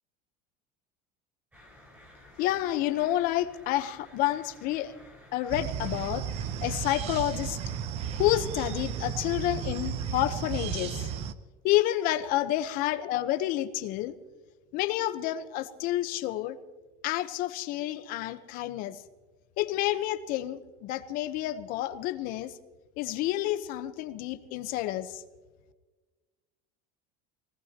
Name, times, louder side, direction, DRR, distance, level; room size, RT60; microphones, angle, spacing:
sound 1, 1.5-9.1, left 1 dB, 10° right, 5.7 m, -55 dB
voice 1, 2.4-4.9 5.3-6.2 6.6-7.6 8.1-11.1 11.6-14.1 14.7-16.6 17.0-18.9 19.6-22.5 23.0-25.2, left 14 dB, 50° left, 11 dB, 1.0 m, -29 dB
sound 2, 5.5-11.3, right 8 dB, 35° right, 0.7 m, -34 dB
23.5 x 18.5 x 3.0 m, 1.2 s
cardioid pair, 165°, 19 cm